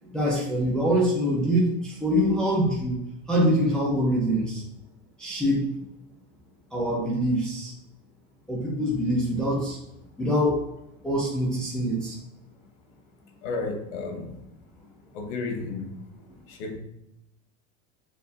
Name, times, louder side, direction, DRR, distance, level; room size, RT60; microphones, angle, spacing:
voice 1, 0.1-3.0 3.3-4.6 5.2-5.6 6.7-7.7 8.5-9.8 10.2-10.6 11.0-12.2, equal, ahead, -6 dB, 0.5 m, -24 dB
voice 2, 13.4-14.3 15.1-15.9 16.5-16.8, left 3 dB, 90° left, 3 dB, 1.1 m, -32 dB
6.5 x 2.3 x 2.6 m, 0.84 s
cardioid pair, 175°, 35 cm